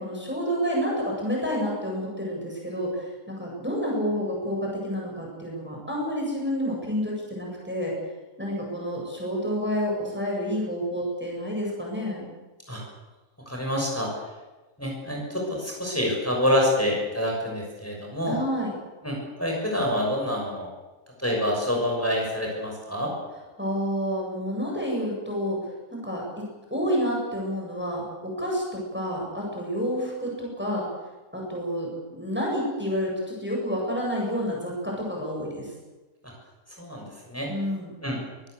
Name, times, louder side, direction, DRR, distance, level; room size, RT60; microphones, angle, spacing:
voice 1, 0.0-2.9 3.3-7.9 8.4-12.3 18.3-18.7 23.6-25.6 25.9-26.2 26.7-30.9 31.3-33.1 33.4-35.7 37.5-37.9, equal, 5° right, -2 dB, 7.8 m, -29 dB
voice 2, 13.5-14.1 14.8-18.4 19.0-20.7 21.2-23.1 36.8-37.5 38.0-38.2, left 1 dB, 10° left, -1 dB, 6.6 m, -27 dB
23.5 x 19.5 x 8.3 m, 1.2 s
omnidirectional pair, 1.6 m